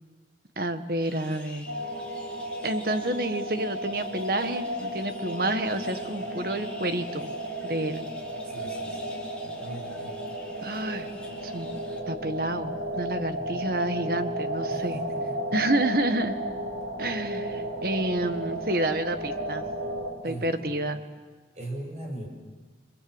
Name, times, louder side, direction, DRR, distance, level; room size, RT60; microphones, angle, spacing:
voice 1, 0.6-1.7 2.6-7.3 7.6-8.1 10.6-11.1 11.4-11.7 12.1-15.0 15.5-16.4 17.0-19.7 20.2-21.0, right 1 dB, 55° right, 9 dB, 1.5 m, -29 dB
sound 1, 1.0-12.0, left 2 dB, 5° left, 4.0 m, -49 dB
sound 2, 1.7-20.1, right 1 dB, 85° right, 5.1 m, -34 dB
voice 2, 8.4-9.1 9.4-10.1 13.4-13.6 14.7-15.4 20.2-20.8 21.5-22.3, right 1 dB, 40° right, 2 dB, 6.3 m, -39 dB
29.5 x 24.5 x 7.9 m, 1.3 s
head